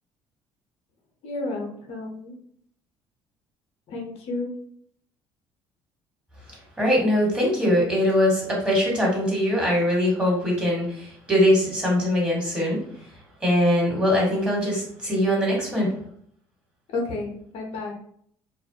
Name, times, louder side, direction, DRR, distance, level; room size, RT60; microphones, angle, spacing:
voice 1, 1.2-2.3 3.9-4.5 16.9-17.9, left 2 dB, 65° left, 0 dB, 0.7 m, -31 dB
voice 2, 6.8-12.8 13.4-15.9, left 1 dB, 10° right, -4 dB, 1.5 m, -22 dB
2.3 x 2.0 x 2.7 m, 0.64 s
supercardioid pair, 70°, 11 cm